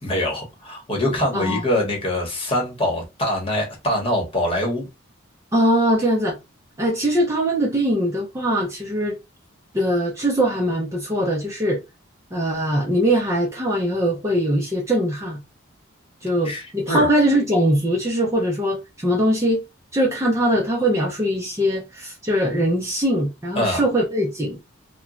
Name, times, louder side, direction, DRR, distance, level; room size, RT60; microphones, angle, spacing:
voice 1, 0.0-4.9 16.4-17.1 23.6-23.8, left 1 dB, 30° left, 1.0 m, -24 dB
voice 2, 5.5-6.4 6.8-9.2 9.7-11.8 12.3-15.4 16.2-19.6 19.9-24.6, equal, 15° right, 0.5 m, -21 dB
2.9 x 2.2 x 2.4 m
head